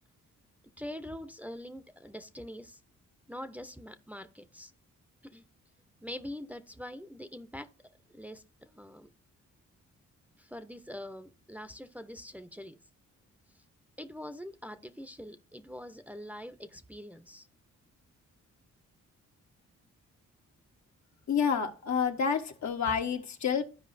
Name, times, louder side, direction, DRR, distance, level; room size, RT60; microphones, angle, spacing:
voice 1, 0.8-2.8 3.3-4.7 5.2-5.4 6.0-7.7 8.1-9.1 10.4-12.8 14.0-17.5, left 1 dB, 5° right, 0.8 m, -44 dB
voice 2, 21.3-23.6, left 6 dB, 60° left, 1.2 m, -29 dB
13.5 x 4.8 x 2.6 m
cardioid pair, 65°, 31 cm